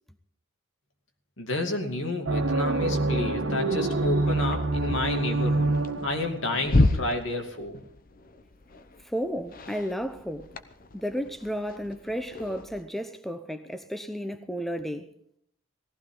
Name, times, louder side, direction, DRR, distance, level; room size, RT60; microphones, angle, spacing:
voice 1, 1.4-5.7 6.0-7.8, left 2 dB, 70° left, 2.5 m, -31 dB
sound 1, 2.3-12.8, left 2 dB, 45° left, 0.9 m, -32 dB
sound 2, 2.3-6.6, right 2 dB, 85° right, 1.3 m, -26 dB
voice 2, 9.0-10.5 10.9-15.1, equal, ahead, 0.7 m, -33 dB
18.0 x 15.0 x 3.9 m
head